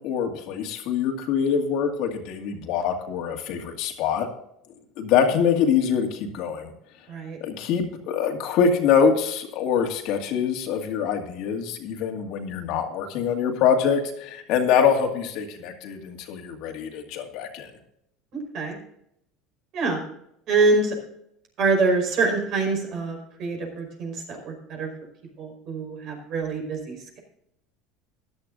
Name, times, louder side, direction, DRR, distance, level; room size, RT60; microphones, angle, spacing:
voice 1, 0.0-4.3 5.0-6.7 7.4-17.7, left 7 dB, 65° left, 3 dB, 2.2 m, -24 dB
voice 2, 7.1-7.4 18.3-18.7 19.7-20.0 20.5-20.9 21.6-24.9 25.4-27.2, right 3 dB, 55° right, 2 dB, 5.1 m, -25 dB
14.5 x 11.0 x 2.7 m, 0.75 s
supercardioid pair, 115°, 0 cm